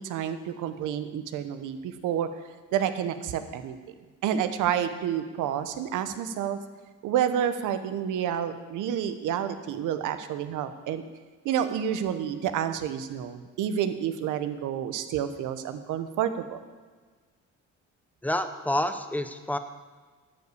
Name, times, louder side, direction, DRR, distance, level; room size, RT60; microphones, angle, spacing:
voice 1, 0.0-2.3 2.7-3.8 4.2-6.6 7.0-11.0 11.4-16.6, right 9 dB, 90° right, 10 dB, 0.9 m, -29 dB
voice 2, 18.2-19.6, left 1 dB, 5° left, 9 dB, 0.8 m, -28 dB
11.5 x 5.2 x 8.2 m, 1.4 s
cardioid pair, 90°, 30 cm